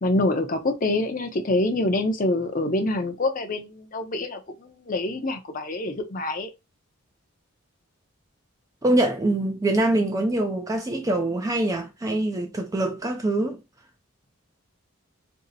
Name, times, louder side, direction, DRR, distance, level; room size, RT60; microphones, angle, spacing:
voice 1, 0.0-6.5, left 2 dB, 40° left, 0.5 m, -26 dB
voice 2, 8.8-13.6, right 1 dB, 15° right, 0.3 m, -24 dB
2.6 x 2.0 x 3.9 m
head